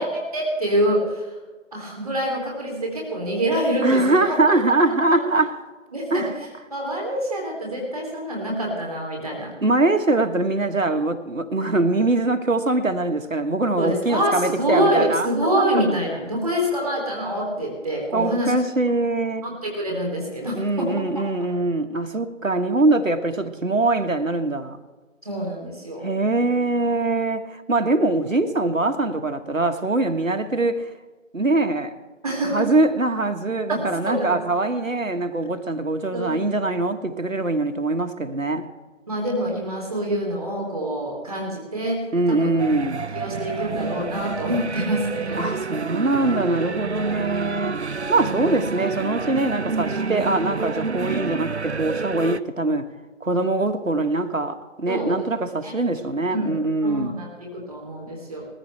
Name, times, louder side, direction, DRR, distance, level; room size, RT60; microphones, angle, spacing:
voice 1, 0.0-1.4 1.7-4.2 5.9-9.5 13.8-18.5 19.4-20.9 25.2-26.0 32.2-32.6 33.7-34.3 36.1-36.3 39.1-42.5 43.1-45.5 48.2-48.5 54.9-55.2 55.6-55.7 56.3-56.5 56.8-58.4, equal, ahead, -20 dB, 1.3 m, -26 dB
voice 2, 3.8-5.5 6.1-6.3 9.6-15.3 18.1-19.5 20.5-24.8 26.0-30.9 31.3-31.9 32.5-38.6 42.1-43.0 45.4-47.8 48.1-52.9 53.2-57.1, right 2 dB, 80° right, 6 dB, 1.5 m, -22 dB
sound 1, 42.6-52.4, right 4 dB, 55° right, 0.6 m, -29 dB
19.5 x 14.5 x 3.3 m, 1.3 s
figure-of-eight pair, 165°, 39 cm